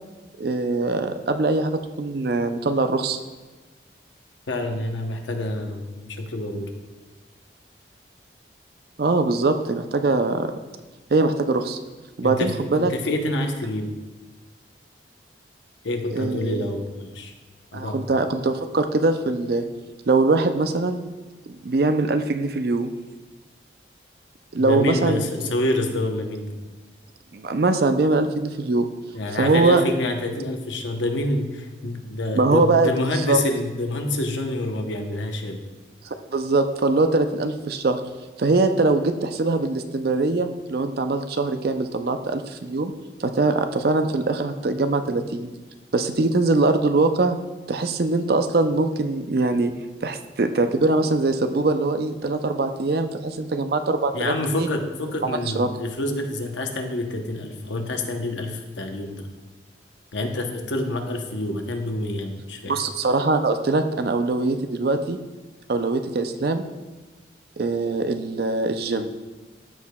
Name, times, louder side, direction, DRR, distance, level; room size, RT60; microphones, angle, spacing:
voice 1, 0.4-3.2 9.0-10.5 11.1-11.8 12.2-12.9 16.1-16.7 17.7-19.7 20.1-21.1 21.6-22.9 24.5-25.5 27.3-28.9 29.4-29.8 32.3-33.4 36.3-38.0 38.4-42.9 43.2-45.5 45.9-47.4 47.7-49.7 50.0-54.3 54.6-54.7 55.2-55.7 62.6-65.2 65.7-66.6 67.6-69.1, right 3 dB, 55° right, 8 dB, 0.4 m, -22 dB
voice 2, 4.5-6.7 12.2-13.9 15.8-17.3 17.7-18.0 24.6-26.6 29.1-35.6 54.1-59.3 60.1-62.8, left 1 dB, 85° left, 4 dB, 0.9 m, -27 dB
13.5 x 4.8 x 2.3 m, 1.2 s
head